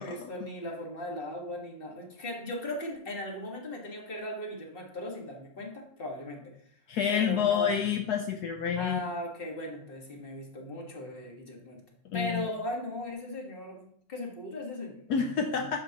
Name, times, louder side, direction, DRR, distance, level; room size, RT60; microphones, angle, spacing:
voice 1, 0.0-6.5 7.1-7.8 8.8-11.8 12.1-15.0, left 1 dB, 35° left, 0 dB, 1.7 m, -38 dB
voice 2, 6.9-9.0 12.1-12.5 15.1-15.8, left 7 dB, 70° left, 4 dB, 1.2 m, -28 dB
11.5 x 6.7 x 2.9 m, 0.66 s
omnidirectional pair, 1.8 m